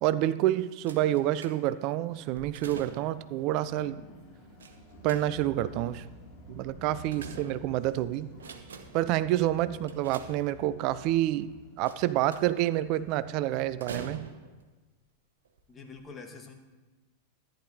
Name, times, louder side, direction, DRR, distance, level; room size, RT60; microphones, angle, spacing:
voice 1, 0.0-4.0 5.0-6.0 6.5-8.3 8.9-11.5 11.8-14.3, right 14 dB, 40° right, 15 dB, 0.3 m, -28 dB
sound 1, 0.5-14.2, left 1 dB, 35° left, 2.2 m, -51 dB
sound 2, 0.9-1.9 2.3-3.3 4.6-5.6 6.6-7.9 8.3-9.1 9.9-10.9 11.9-12.7 13.8-14.6 15.5-15.6 15.9-16.0, right 5 dB, 65° right, 0.8 m, -45 dB
voice 2, 15.7-16.5, left 4 dB, 20° left, 3 dB, 1.4 m, -45 dB
14.0 x 10.0 x 2.6 m, 1.2 s
figure-of-eight pair, 90°, 0 cm